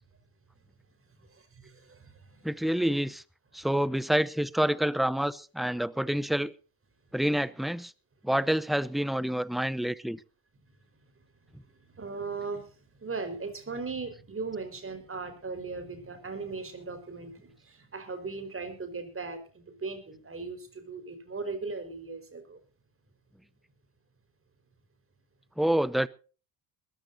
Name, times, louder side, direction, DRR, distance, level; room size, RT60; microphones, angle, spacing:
voice 1, 1.2-2.5 11.9-22.6, right 4 dB, 30° right, 4.6 m, -38 dB
voice 2, 2.4-3.2 3.5-6.5 7.1-7.9 8.2-10.2 25.6-26.1, right 1 dB, ahead, 0.6 m, -27 dB
21.0 x 14.5 x 2.7 m
cardioid pair, 90°, 46 cm